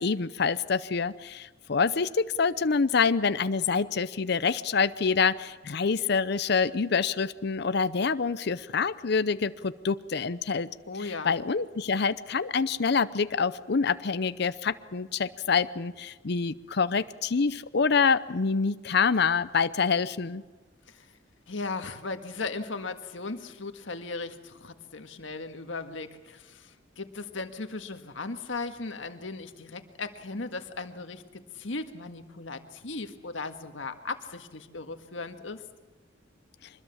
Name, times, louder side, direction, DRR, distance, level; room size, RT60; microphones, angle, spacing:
voice 1, 0.0-10.7 11.0-20.4, left 5 dB, 60° left, 13 dB, 0.6 m, -26 dB
voice 2, 10.9-11.3 20.9-21.1 21.5-35.6, left 3 dB, 80° left, 7 dB, 1.8 m, -37 dB
24.5 x 21.0 x 7.2 m, 1.2 s
head